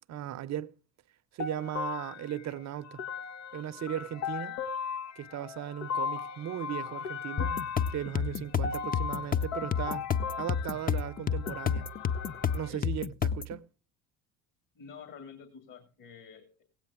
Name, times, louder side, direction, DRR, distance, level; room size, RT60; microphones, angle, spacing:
voice 1, 0.1-0.7 1.3-3.0 3.5-4.6 5.2-10.1 10.4-11.9 12.5-13.7, right 11 dB, 40° right, 0.6 m, -37 dB
sound 1, 1.4-12.7, left 6 dB, 75° left, 1.1 m, -38 dB
sound 2, 7.4-13.6, left 7 dB, 20° left, 0.6 m, -30 dB
voice 2, 14.7-16.6, left 6 dB, 50° left, 2.2 m, -49 dB
16.5 x 8.8 x 3.6 m
hypercardioid pair, 65°, 41 cm